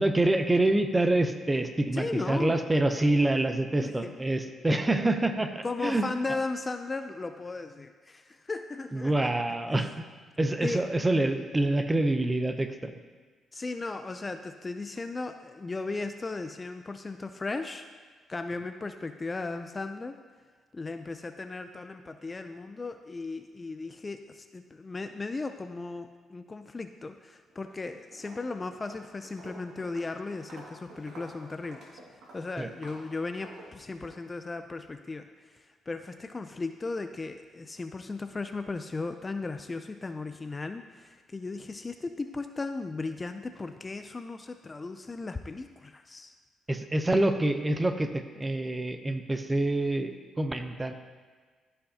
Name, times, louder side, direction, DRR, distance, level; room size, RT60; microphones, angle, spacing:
voice 1, 0.0-6.0 8.9-9.9 10.4-13.0 32.6-32.7 46.7-50.9, right 2 dB, 15° right, 8 dB, 0.6 m, -26 dB
voice 2, 1.9-2.6 3.8-4.1 5.6-9.3 10.6-10.8 13.5-17.9 18.3-20.2 20.7-32.0 32.3-46.3, left 3 dB, 25° left, 8 dB, 0.4 m, -36 dB
Walk footsteps, 27.5-27.8 28.1-34.2, right 1 dB, 80° right, 2.0 m, -50 dB
13.5 x 5.6 x 2.8 m, 1.5 s
cardioid pair, 90°, 0 cm